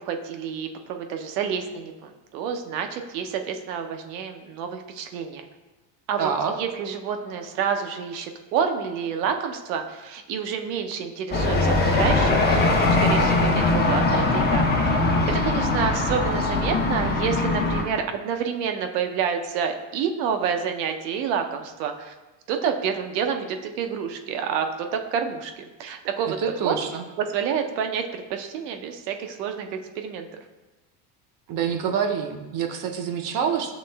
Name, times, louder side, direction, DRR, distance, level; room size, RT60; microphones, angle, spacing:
voice 1, 0.0-5.4 6.1-6.3 6.6-14.7 15.0-22.1 22.5-26.4 26.6-26.8 27.2-29.7 30.0-30.3, right 7 dB, 85° right, 5 dB, 0.7 m, -28 dB
voice 2, 6.2-6.6 26.2-27.0 31.5-33.7, right 7 dB, 45° right, 5 dB, 0.6 m, -26 dB
sound 1, 11.3-17.8, left 2 dB, 20° left, 0.6 m, -21 dB
7.1 x 3.1 x 2.2 m, 1.1 s
supercardioid pair, 105°, 48 cm